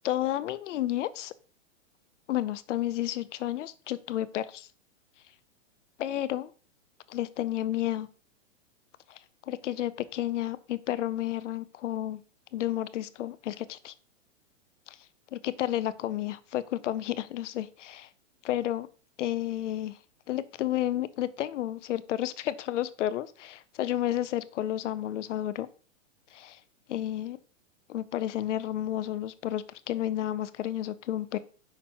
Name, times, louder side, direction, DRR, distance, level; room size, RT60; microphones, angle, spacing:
voice 1, 0.0-1.3 2.3-4.7 6.0-6.5 7.1-8.1 9.5-12.2 12.5-13.9 15.4-18.1 18.4-18.9 19.2-19.9 20.3-25.7 26.3-26.6 26.9-27.4 27.9-31.4, left 13 dB, 70° left, 16 dB, 0.6 m, -31 dB
7.2 x 5.9 x 2.8 m, 0.38 s
hypercardioid pair, 150°, 38 cm